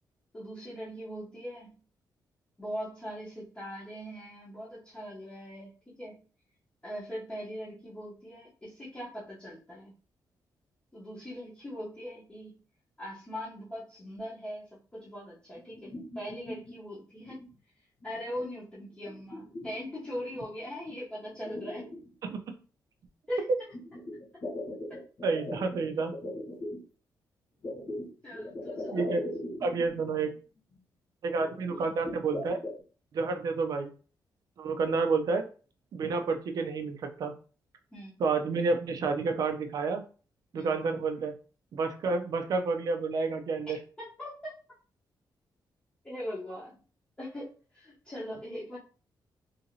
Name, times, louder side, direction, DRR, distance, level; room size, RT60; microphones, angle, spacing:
voice 1, 0.3-1.8 2.6-6.2 6.8-9.9 10.9-12.6 13.0-17.4 18.0-21.9 23.3-23.4 24.9-25.0 28.2-29.1 31.7-32.0 37.9-38.1 40.5-40.7 43.7-44.5 46.0-46.8 47.2-48.8, equal, 15° left, -10 dB, 0.8 m, -40 dB
sound 1, 15.6-16.8 17.2-17.6 18.0-18.5 18.8-20.4 20.9-21.0 21.3-22.6 23.7-26.8 27.6-30.0 30.4-30.5 30.7-30.8 31.4-32.8, left 1 dB, 45° left, 1.2 m, -40 dB
voice 2, 25.2-26.1 28.9-29.2 29.6-30.3 31.2-32.6 33.1-33.9 34.6-35.5 35.9-37.4 38.2-40.0 40.5-41.3 41.7-43.8, right 4 dB, 55° right, 6 dB, 0.4 m, -29 dB
2.8 x 2.6 x 2.6 m, 0.38 s
wide cardioid pair, 165°, 8 cm